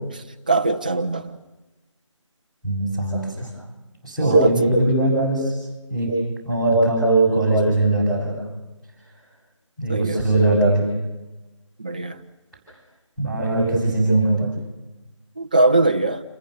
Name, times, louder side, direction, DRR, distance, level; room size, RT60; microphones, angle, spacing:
voice 1, 0.5-1.3 4.3-4.5 9.9-10.2 11.8-12.2 15.4-16.2, right 2 dB, 15° right, 0.7 m, -21 dB
voice 2, 2.6-3.5 4.0-5.5 5.9-6.1 6.4-8.4 9.8-10.8 13.2-14.5, right 2 dB, ahead, 7.6 m, -20 dB
30.0 x 22.0 x 6.9 m
figure-of-eight pair, 165°, 16 cm